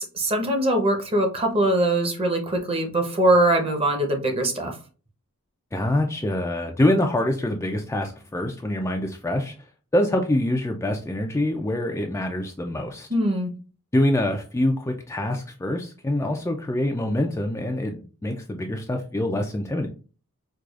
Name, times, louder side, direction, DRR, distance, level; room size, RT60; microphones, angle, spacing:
voice 1, 0.0-4.7 13.1-13.5, right 1 dB, 25° right, 3 dB, 0.8 m, -22 dB
voice 2, 5.7-9.5 9.9-13.1 13.9-19.9, left 1 dB, 10° left, 3 dB, 0.3 m, -25 dB
4.7 x 2.3 x 2.4 m, 0.37 s
head